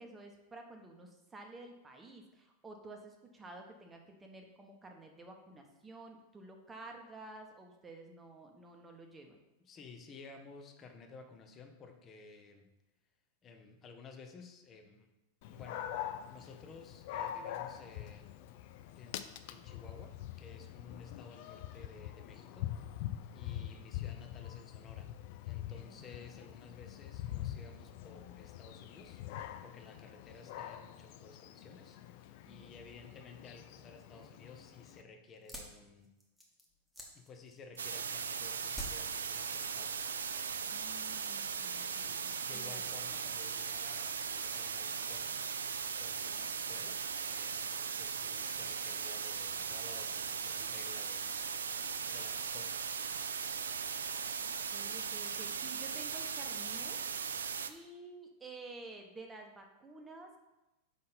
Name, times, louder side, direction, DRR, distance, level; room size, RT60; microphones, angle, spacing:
voice 1, 0.0-9.4 25.7-25.9 32.5-32.7 40.6-42.9 54.4-57.0 57.3-60.4, right 2 dB, 15° right, 3 dB, 1.0 m, -51 dB
voice 2, 9.6-12.7 13.4-15.1 15.5-18.4 18.9-19.2 19.5-23.0 23.3-25.1 25.4-36.1 37.1-40.0 42.0-45.4 46.0-47.7 48.0-51.8 52.1-52.8, left 4 dB, 25° left, 5 dB, 0.8 m, -55 dB
Dog, 15.4-35.0, left 12 dB, 50° left, 0.4 m, -44 dB
sound 1, 35.4-38.1 38.7-40.3 40.5-41.1, equal, ahead, 1.3 m, -48 dB
sound 2, 37.8-57.7, right 6 dB, 70° right, 0.3 m, -38 dB
5.3 x 3.8 x 5.5 m, 1.0 s
figure-of-eight pair, 90°, 0 cm